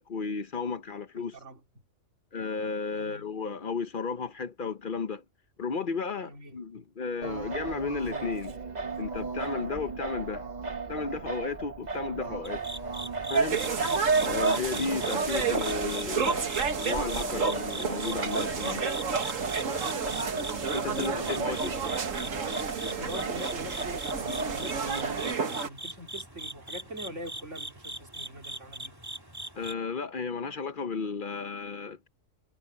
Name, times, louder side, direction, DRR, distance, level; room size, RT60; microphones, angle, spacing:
voice 1, 0.0-1.4 2.3-5.2 5.6-8.5 9.0-10.4 10.9-12.6 13.3-13.6 14.2-16.4 16.8-18.9 20.7-21.7 29.6-32.1, left 5 dB, 45° left, 0.9 m, -34 dB
voice 2, 1.1-1.6 2.9-3.3 6.2-6.6 16.2-16.8 20.9-22.0 22.9-29.0, right 1 dB, 65° right, 4.3 m, -43 dB
Singing, 7.2-25.3, right 4 dB, 35° right, 1.1 m, -37 dB
sound 1, 12.4-29.7, right 1 dB, 15° right, 2.8 m, -41 dB
sound 2, 13.3-25.7, right 5 dB, 90° right, 2.0 m, -30 dB
omnidirectional pair, 1.3 m